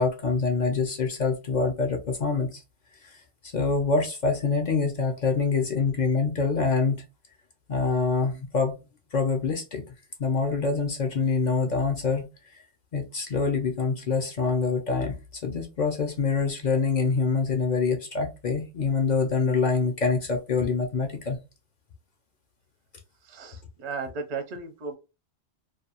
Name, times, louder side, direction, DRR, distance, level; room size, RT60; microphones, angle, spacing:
voice 1, 0.0-2.6 3.0-7.0 7.7-8.7 9.1-9.8 10.2-12.3 12.5-12.6 12.9-15.2 15.4-21.4, left 4 dB, 55° left, 4 dB, 0.5 m, -25 dB
voice 2, 23.2-25.0, right 4 dB, 50° right, 6 dB, 0.5 m, -35 dB
2.4 x 2.2 x 2.8 m, 0.27 s
omnidirectional pair, 1.2 m